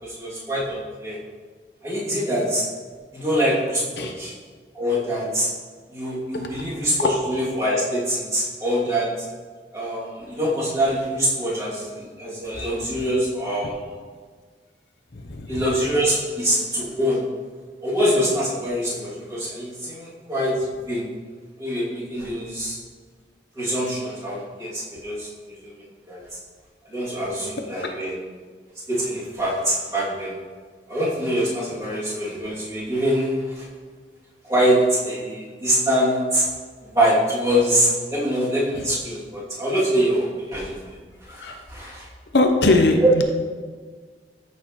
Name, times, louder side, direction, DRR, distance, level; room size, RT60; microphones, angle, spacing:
voice 1, 0.0-1.2 1.8-2.6 3.1-4.3 4.7-5.5 5.9-9.3 9.7-13.9 15.5-17.2 17.8-21.0 21.6-22.8 23.5-25.6 26.1-26.2 26.9-28.2 28.9-30.4 30.9-33.7 34.5-36.5 36.9-41.0 41.3-42.1, equal, 20° right, -8 dB, 2.7 m, -24 dB
voice 2, 15.1-15.7 27.8-27.9 38.8-38.9 41.3-41.6 42.3-43.2, left 2 dB, 65° left, 4 dB, 0.8 m, -21 dB
13.5 x 6.4 x 3.1 m, 1.5 s
head